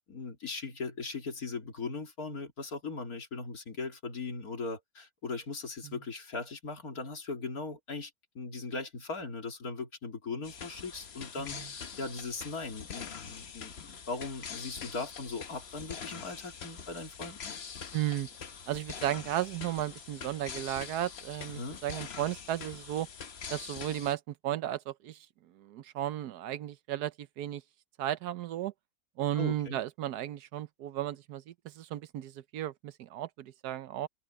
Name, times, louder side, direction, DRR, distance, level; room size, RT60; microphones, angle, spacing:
voice 1, 0.1-17.6 21.5-21.8 29.4-29.8, left 4 dB, 65° left, 3.3 m, -39 dB
sound 1, 10.4-24.1, left 6 dB, 45° left, 1.1 m, -44 dB
voice 2, 11.4-11.7 17.9-18.3 18.7-23.1 23.5-27.6 28.0-28.7 29.2-34.1, right 12 dB, 85° right, 1.3 m, -35 dB
omnidirectional pair, 1.6 m